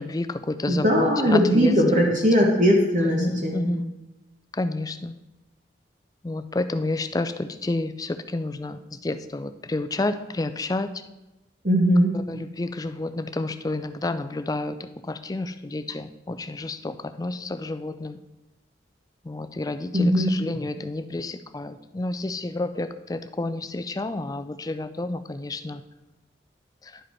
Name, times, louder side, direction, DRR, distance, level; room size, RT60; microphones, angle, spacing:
voice 1, 0.0-2.1 3.0-3.8 4.5-5.1 6.2-10.9 12.3-14.8 15.1-18.2 19.2-25.8 26.8-26.9, left 2 dB, 20° left, 10 dB, 0.3 m, -30 dB
voice 2, 0.7-3.7 11.6-12.1 19.9-20.3, equal, 45° right, -1 dB, 1.2 m, -20 dB
11.0 x 5.0 x 4.5 m, 1.0 s
head